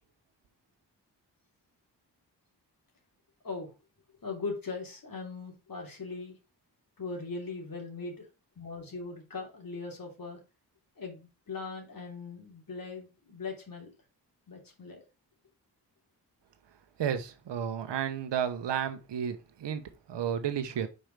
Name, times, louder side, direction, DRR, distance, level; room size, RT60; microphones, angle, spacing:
voice 1, 4.2-6.3 7.0-8.2 8.5-10.4 11.0-13.9 14.5-15.0, left 4 dB, 55° left, 3.1 m, -40 dB
voice 2, 17.0-19.8 20.1-20.9, right 8 dB, 75° right, 1.1 m, -32 dB
5.4 x 4.6 x 5.2 m
supercardioid pair, 45°, 42 cm